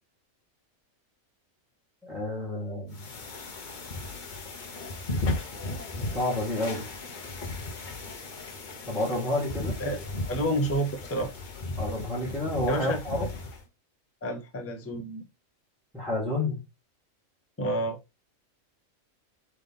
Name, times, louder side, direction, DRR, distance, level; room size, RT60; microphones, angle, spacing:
voice 1, 2.0-3.1 6.0-6.9 8.9-9.8 11.8-13.2 15.9-16.6, left 2 dB, ahead, 1.8 m, -30 dB
sound 1, 2.9-13.6, left 2 dB, 45° left, 0.8 m, -36 dB
voice 2, 10.2-11.3 12.7-13.0 14.2-15.2 17.6-18.0, right 1 dB, 15° left, 0.5 m, -29 dB
3.6 x 3.4 x 3.7 m
omnidirectional pair, 1.4 m